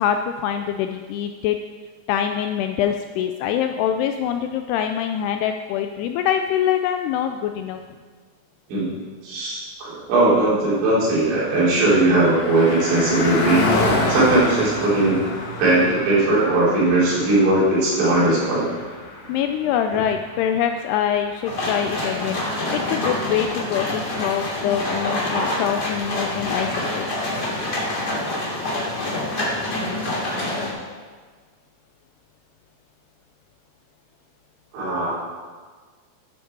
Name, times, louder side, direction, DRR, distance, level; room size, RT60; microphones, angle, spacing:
voice 1, 0.0-1.6 2.1-7.8 19.3-22.4 22.7-26.7 26.9-27.3, left 9 dB, 85° left, 6 dB, 2.3 m, -24 dB
voice 2, 9.2-13.6 14.1-15.2 15.6-18.7 19.9-20.0 34.7-35.1, right 2 dB, 80° right, -7 dB, 6.2 m, -19 dB
Car passing by, 10.6-22.4, left 2 dB, 55° left, 2.8 m, -29 dB
sound 1, 21.5-30.7, left 1 dB, 30° left, 2.4 m, -26 dB
13.0 x 10.0 x 4.7 m, 1.5 s
omnidirectional pair, 5.1 m